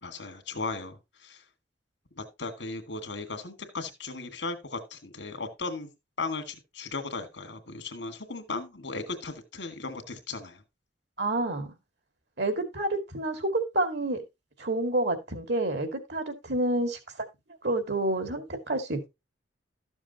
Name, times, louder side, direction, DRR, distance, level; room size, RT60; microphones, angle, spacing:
voice 1, 0.0-1.4 2.2-5.9 6.2-10.6, left 3 dB, 80° left, 2.1 m, -36 dB
voice 2, 11.2-11.7 12.4-14.2 14.6-17.0 17.6-19.1, right 2 dB, 65° right, 2.3 m, -28 dB
13.0 x 7.1 x 2.9 m
head